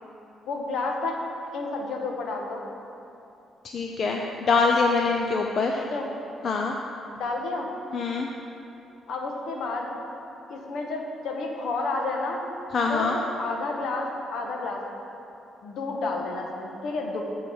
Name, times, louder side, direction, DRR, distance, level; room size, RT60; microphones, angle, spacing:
voice 1, 0.5-1.2 1.5-2.6 5.8-6.1 7.2-7.7 9.1-10.0 10.5-12.5 12.9-14.8 15.6-17.2, left 3 dB, 75° left, 1 dB, 1.2 m, -30 dB
voice 2, 3.7-5.8 6.4-6.8 7.9-8.3 12.7-13.2, left 4 dB, 55° left, 1 dB, 0.6 m, -24 dB
9.1 x 4.7 x 7.1 m, 2.9 s
cardioid pair, 90°, 0 cm